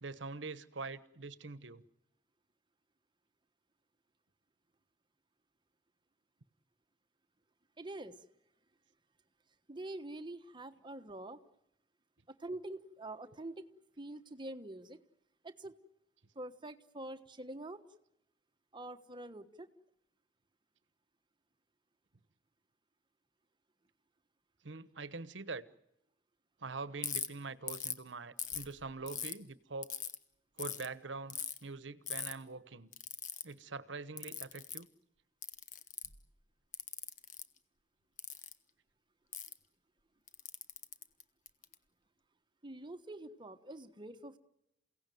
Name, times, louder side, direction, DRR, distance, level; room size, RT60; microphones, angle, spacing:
voice 1, 0.0-1.8 24.6-25.7 26.6-29.9 30.6-32.9 33.4-34.9, right 3 dB, 80° right, 1.1 m, -44 dB
voice 2, 7.8-8.2 9.7-11.4 12.3-13.6 14.0-15.0 15.4-15.7 16.3-17.8 18.7-19.7 42.6-44.4, right 1 dB, 25° right, 1.2 m, -45 dB
Ratchet pawl, 27.0-27.3 27.7-28.0 28.4-29.3 29.8-30.2 30.6-30.9 31.3-31.6 32.1-32.3 32.9-33.4 34.2-34.8 35.4-36.2 36.7-37.4 38.2-38.5 39.3-39.5 40.3-41.7, left 9 dB, 45° left, 1.4 m, -40 dB
29.0 x 17.5 x 9.3 m
head